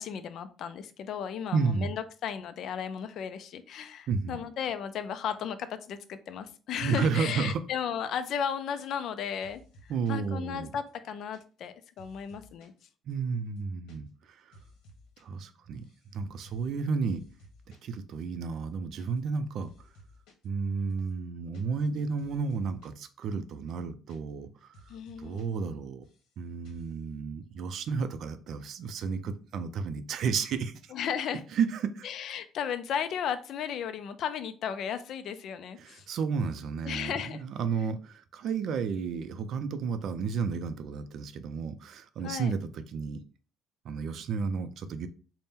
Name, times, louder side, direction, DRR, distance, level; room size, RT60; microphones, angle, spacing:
voice 1, 0.0-9.6 10.1-12.7 24.9-25.6 30.9-31.4 32.0-36.1 36.9-37.4 42.2-42.5, left 8 dB, 55° left, 0.4 m, -35 dB
voice 2, 1.5-1.9 4.1-4.4 6.8-7.6 9.9-10.7 13.1-14.6 15.2-15.9 16.1-17.2 17.7-19.7 20.4-24.7 25.2-26.0 26.4-30.9 31.5-32.1 35.8-43.2 43.8-45.1, right 5 dB, 55° right, 0.4 m, -32 dB
sound 1, 8.8-9.2 9.4-10.3 10.7-12.8 13.1-13.2 13.5-14.0 14.2-15.2 15.5-16.1 16.4-16.8 17.1-17.9 18.2-18.3 18.6-19.4 19.6-20.5 20.9-23.0 23.3-23.4 23.7-24.5 24.7-25.4 25.7-26.3 26.6-27.0, equal, 80° left, 1.0 m, -57 dB
4.1 x 2.1 x 3.5 m
cardioid pair, 160°, 0 cm